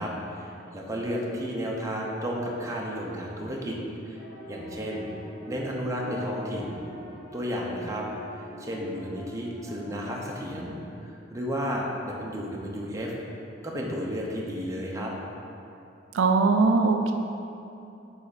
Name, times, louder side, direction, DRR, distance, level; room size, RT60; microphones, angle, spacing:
voice 1, 0.0-3.8 4.1-4.2 4.5-5.1 5.5-6.8 7.3-8.1 8.6-10.8 11.0-13.1 13.6-15.1, equal, 15° right, -2 dB, 0.7 m, -32 dB
sound 1, 4.1-10.2, equal, 5° left, 1.2 m, -44 dB
voice 2, 16.1-17.1, right 4 dB, 75° right, 5 dB, 0.4 m, -21 dB
8.1 x 3.4 x 4.1 m, 2.9 s
head